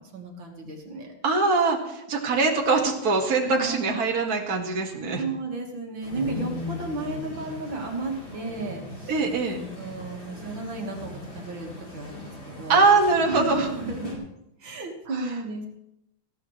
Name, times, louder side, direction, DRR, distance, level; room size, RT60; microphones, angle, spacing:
voice 1, 0.0-1.1 3.5-4.0 5.0-9.1 9.7-12.9 13.3-14.2 14.6-15.7, right 3 dB, 75° right, 1 dB, 2.5 m, -34 dB
voice 2, 1.2-5.2 9.1-9.6 12.7-13.7 15.1-15.2, right 3 dB, 50° right, 0 dB, 2.3 m, -22 dB
sound 1, 6.0-14.1, left 2 dB, 75° left, 4.6 m, -39 dB
19.0 x 15.0 x 3.2 m, 0.81 s
omnidirectional pair, 2.1 m